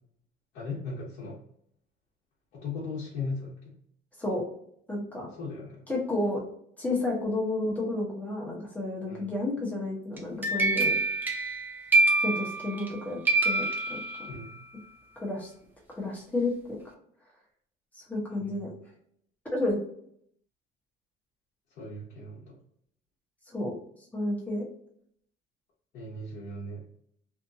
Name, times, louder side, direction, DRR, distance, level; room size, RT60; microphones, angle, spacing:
voice 1, 0.5-1.4 2.5-3.5 5.4-5.8 9.1-9.3 14.3-14.6 18.4-18.5 21.8-22.6 25.9-26.8, left 3 dB, 50° left, -6 dB, 1.0 m, -37 dB
voice 2, 4.9-5.3 5.9-6.4 6.8-11.0 12.2-14.0 15.2-15.5 16.0-16.8 18.1-18.7 19.5-19.8 23.5-23.8 24.1-24.6, left 2 dB, 10° left, -5 dB, 0.9 m, -31 dB
sound 1, 10.2-12.9 13.3-14.6, right 2 dB, 10° right, 0.3 m, -26 dB
2.7 x 2.5 x 2.5 m, 0.68 s
cardioid pair, 170°, 20 cm